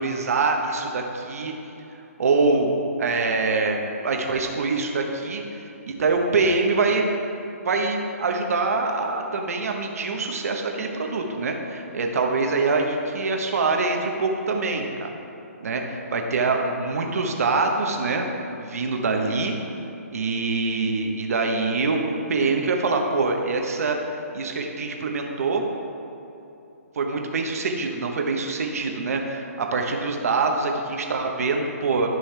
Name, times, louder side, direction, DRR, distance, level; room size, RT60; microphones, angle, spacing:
voice 1, 0.0-1.5 2.2-2.7 3.0-7.1 7.6-15.1 15.6-18.2 18.6-19.6 20.1-25.6 26.9-32.1, right 3 dB, 65° right, 2 dB, 1.3 m, -24 dB
13.5 x 5.5 x 3.5 m, 2.9 s
hypercardioid pair, 145°, 9 cm